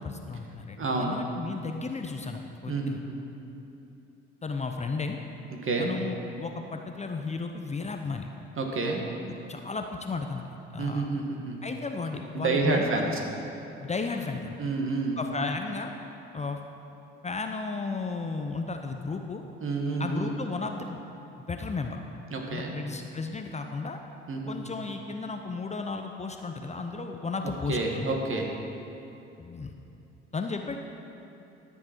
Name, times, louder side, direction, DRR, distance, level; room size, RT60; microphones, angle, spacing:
voice 1, 0.0-3.0 4.4-5.2 5.8-8.3 9.5-10.4 10.7-11.1 11.6-13.2 13.8-14.6 15.2-15.9 16.3-16.6 17.2-19.4 20.0-21.0 21.5-22.0 22.5-24.0 24.5-28.1 29.4-29.7 30.3-30.8, left 4 dB, 25° left, 4 dB, 0.7 m, -34 dB
voice 2, 0.8-1.2 2.7-3.0 5.6-5.9 8.6-9.0 10.8-11.6 12.3-13.2 14.6-15.2 19.6-20.3 22.3-22.7 24.3-24.6 27.7-28.5, right 3 dB, 45° right, 1 dB, 1.8 m, -29 dB
13.0 x 7.4 x 4.6 m, 2.9 s
hypercardioid pair, 55°, 30 cm